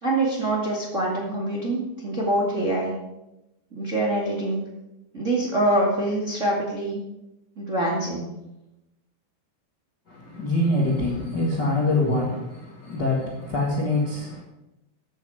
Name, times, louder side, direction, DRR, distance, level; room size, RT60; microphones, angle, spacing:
voice 1, 0.0-2.9 3.7-4.6 5.1-7.0 7.5-8.3, right 1 dB, 30° right, 1.4 m, -25 dB
voice 2, 10.1-14.4, left 2 dB, 80° left, 0.9 m, -25 dB
14.5 x 9.3 x 5.0 m
omnidirectional pair, 5.3 m